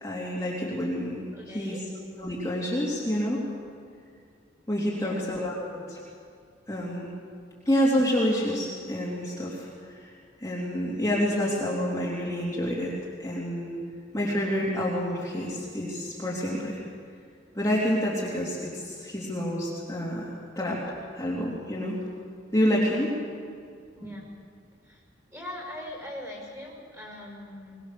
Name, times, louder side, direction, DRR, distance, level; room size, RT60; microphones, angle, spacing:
voice 1, 0.0-1.8 2.2-3.4 4.7-6.0 6.7-7.1 7.6-10.0 10.4-12.9 13.2-13.8 14.1-16.8 17.5-22.0 22.5-23.1, equal, 15° left, -6 dB, 3.2 m, -28 dB
voice 2, 1.3-1.8 4.9-5.3 23.9-24.3 24.8-25.0 25.3-27.8, left 1 dB, 15° right, -1 dB, 5.7 m, -41 dB
23.0 x 20.5 x 6.8 m, 2.2 s
head